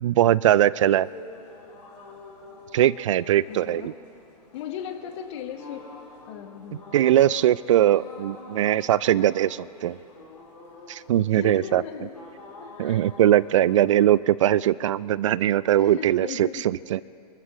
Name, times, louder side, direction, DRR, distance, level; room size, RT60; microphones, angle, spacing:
voice 1, 0.0-1.1 2.7-3.9 6.9-10.0 10.9-11.8 12.8-17.0, right 12 dB, 50° right, 21 dB, 0.4 m, -21 dB
sound 1, 1.0-14.2, left 2 dB, 80° left, 4.8 m, -47 dB
voice 2, 3.5-3.9 4.5-5.8 6.3-6.9 11.3-12.1 12.6-13.0 15.8-16.7, left 9 dB, 45° left, 5 dB, 1.5 m, -37 dB
28.0 x 13.5 x 3.1 m, 2.5 s
figure-of-eight pair, 110°, 21 cm